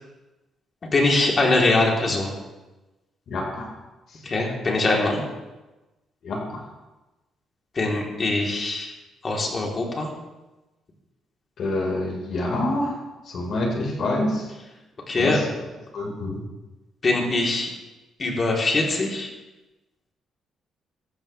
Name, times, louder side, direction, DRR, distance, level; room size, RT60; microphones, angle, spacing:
voice 1, 0.8-2.3 4.2-5.2 7.8-8.9 9.2-10.1 15.1-15.4 17.0-17.7 18.2-19.3, left 2 dB, 40° left, -1 dB, 3.5 m, -22 dB
voice 2, 3.3-3.7 4.1-4.2 6.2-6.7 11.6-13.0 13.2-14.5 15.2-15.5 15.9-16.4, left 1 dB, 60° left, -1 dB, 4.6 m, -27 dB
14.0 x 14.0 x 3.4 m, 1.1 s
cardioid pair, 90°, 0 cm